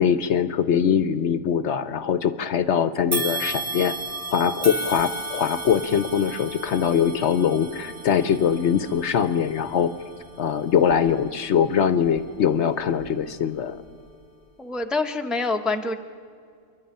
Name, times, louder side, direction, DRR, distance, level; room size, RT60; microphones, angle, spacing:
voice 1, 0.0-4.0 4.3-9.9 10.4-13.8, left 8 dB, 65° left, 13 dB, 0.9 m, -22 dB
sound 1, 3.1-12.4 12.9-13.1 14.1-14.2, right 2 dB, 25° right, 1.9 m, -34 dB
voice 2, 14.6-16.0, left 3 dB, ahead, 5 dB, 0.7 m, -26 dB
27.5 x 11.5 x 8.8 m, 2.3 s
omnidirectional pair, 1.4 m